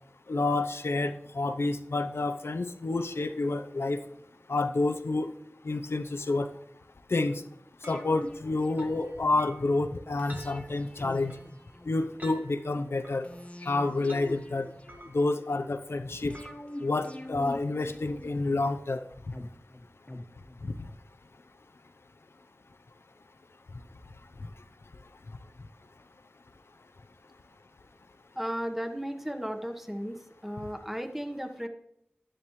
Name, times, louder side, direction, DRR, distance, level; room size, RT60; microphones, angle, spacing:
voice 1, 0.3-4.0 4.5-5.3 5.6-6.5 7.1-7.4 7.9-11.4 11.9-13.3 13.6-14.7 15.1-16.3 16.8-19.0 20.6-20.7, left 2 dB, 90° left, 7 dB, 0.7 m, -29 dB
sound 1, 7.8-9.4 10.2-12.3 13.2-15.5 16.3-18.7 19.3-21.0 21.3-21.4, left 1 dB, 30° left, 1.3 m, -45 dB
sound 2, 7.8-16.8, right 1 dB, 40° right, 1.5 m, -52 dB
voice 2, 28.4-31.7, equal, 5° right, 6 dB, 1.3 m, -35 dB
11.0 x 10.0 x 3.2 m, 0.76 s
wide cardioid pair, 45°, 4 cm